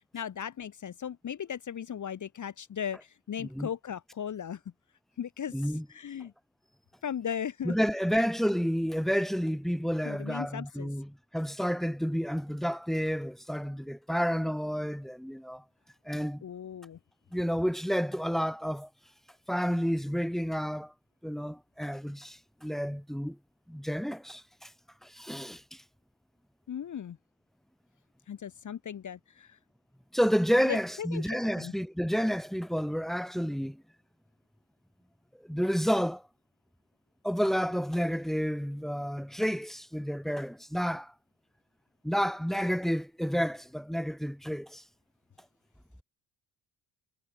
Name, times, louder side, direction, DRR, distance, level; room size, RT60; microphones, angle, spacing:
voice 1, 0.1-4.6 5.2-5.5 5.9-6.3 7.0-7.7 8.1-8.2 10.0-10.9 16.4-17.0 26.7-27.2 28.3-29.6 30.6-31.2 31.6-31.7, left 8 dB, 40° left, 1.1 m, -37 dB
voice 2, 5.5-5.8 7.6-15.6 16.0-16.4 17.3-18.9 19.5-20.9 21.2-23.4 23.7-24.7 25.0-25.8 30.1-33.8 35.5-36.2 37.2-41.1 42.0-44.8, equal, ahead, 1.5 m, -30 dB
supercardioid pair, 75°, 46 cm